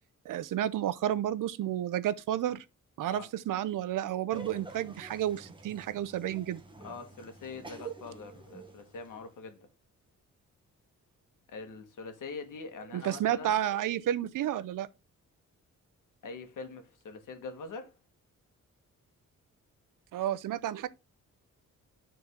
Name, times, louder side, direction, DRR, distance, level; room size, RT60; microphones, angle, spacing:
voice 1, 0.2-2.6 3.0-6.6 12.9-14.9 20.1-20.9, right 11 dB, 80° right, 0.6 m, -31 dB
Laughter, 4.3-9.4, right 4 dB, 15° right, 1.2 m, -48 dB
voice 2, 6.8-9.7 11.5-13.6 16.2-17.9, left 4 dB, 75° left, 1.6 m, -43 dB
9.6 x 3.9 x 3.6 m
wide cardioid pair, 150°, 32 cm